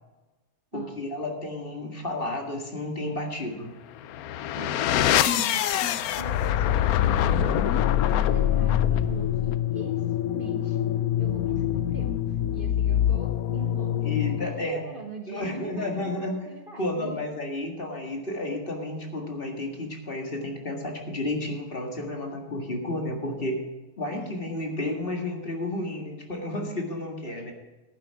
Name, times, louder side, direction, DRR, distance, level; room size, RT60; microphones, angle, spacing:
voice 1, 0.7-3.7 14.0-14.8 15.3-16.4 16.8-23.6 24.0-27.5, left 1 dB, 40° left, 2 dB, 2.0 m, -31 dB
sound 1, 4.0-14.7, left 11 dB, 80° left, 1.1 m, -25 dB
voice 2, 4.6-10.8 11.2-17.2 24.1-24.8 27.3-27.5, right 3 dB, 45° right, 4 dB, 0.9 m, -42 dB
11.5 x 9.7 x 4.7 m, 1.2 s
omnidirectional pair, 1.6 m